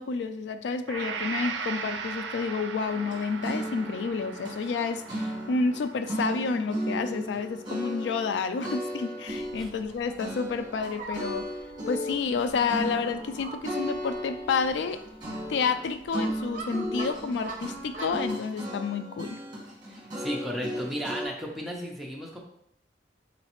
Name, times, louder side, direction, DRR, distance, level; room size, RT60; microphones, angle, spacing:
voice 1, 0.0-11.5 11.9-15.0 15.5-19.4, left 5 dB, 70° left, 10 dB, 0.3 m, -30 dB
Gong, 0.9-8.9, right 5 dB, 90° right, 0.4 m, -39 dB
sound 1, 2.9-5.8 6.1-8.4 8.6-21.3, equal, 25° right, 1.2 m, -35 dB
Fowl, 9.3-18.3, right 3 dB, 45° right, 0.6 m, -44 dB
voice 2, 19.9-22.4, equal, ahead, -2 dB, 0.6 m, -34 dB
4.0 x 3.1 x 2.9 m, 0.73 s
head